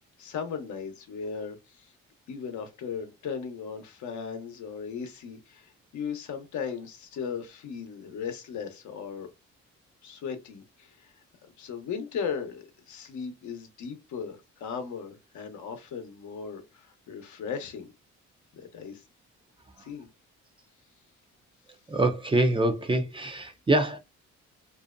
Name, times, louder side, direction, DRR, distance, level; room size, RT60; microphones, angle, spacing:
voice 1, 0.2-1.9 2.3-9.3 10.0-17.9 18.5-19.0 19.8-20.1, left 6 dB, 70° left, 0.8 m, -37 dB
voice 2, 21.9-24.0, right 2 dB, 15° right, 0.5 m, -25 dB
2.6 x 2.1 x 2.3 m
cardioid pair, 90°, 30 cm